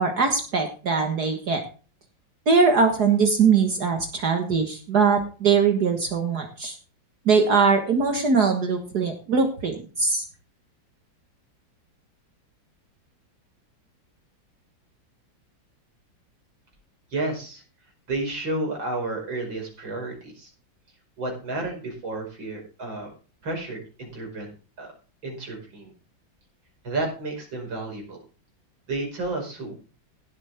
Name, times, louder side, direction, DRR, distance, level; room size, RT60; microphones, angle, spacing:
voice 1, 0.0-1.6 2.5-6.8 7.3-10.2, right 5 dB, 55° right, 4 dB, 2.0 m, -21 dB
voice 2, 17.1-17.6 18.1-20.5 21.2-23.1 23.4-24.5 24.8-24.9 25.2-25.9 26.8-28.2 28.9-29.7, right 2 dB, 80° right, 1 dB, 6.0 m, -31 dB
17.0 x 8.3 x 3.5 m, 0.36 s
omnidirectional pair, 2.1 m